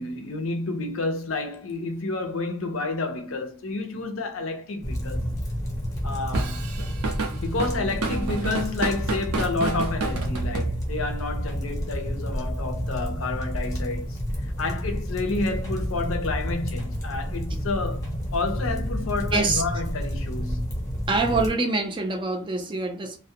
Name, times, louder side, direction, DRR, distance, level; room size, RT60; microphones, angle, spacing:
voice 1, 0.0-5.2 6.0-6.7 7.4-14.2 14.6-20.7, left 3 dB, 75° left, 0.6 m, -30 dB
sound 1, 4.8-21.5, equal, 15° left, 0.6 m, -30 dB
Drum kit / Drum, 6.3-11.2, right 3 dB, 90° right, 0.5 m, -30 dB
voice 2, 19.3-19.6 21.1-23.2, right 3 dB, 20° right, 0.3 m, -25 dB
2.3 x 2.1 x 2.7 m
head